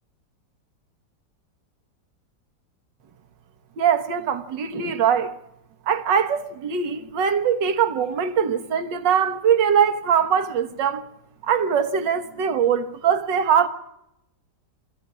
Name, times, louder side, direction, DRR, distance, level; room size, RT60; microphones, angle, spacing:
voice 1, 3.8-5.3 5.9-11.1 11.4-13.7, right 7 dB, 85° right, 1.9 m, -22 dB
22.5 x 14.5 x 9.7 m
omnidirectional pair, 1.9 m